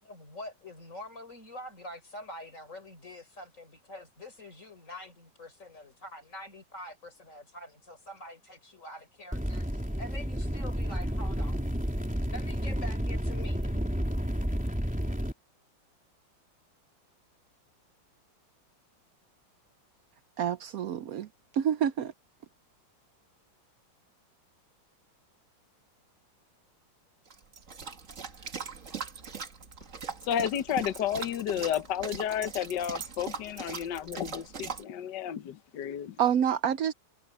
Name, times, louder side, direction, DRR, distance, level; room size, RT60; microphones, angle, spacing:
voice 1, 0.0-11.6 12.3-13.8, left 1 dB, 40° left, 5.8 m, -45 dB
sound 1, 9.3-15.3, equal, 5° right, 3.6 m, -31 dB
voice 2, 20.4-21.3 21.5-22.1 36.2-36.9, right 9 dB, 70° right, 0.8 m, -27 dB
sound 2, 27.3-34.8, right 5 dB, 40° right, 1.9 m, -40 dB
voice 3, 30.2-36.2, left 9 dB, 65° left, 1.5 m, -32 dB
omnidirectional pair, 2.1 m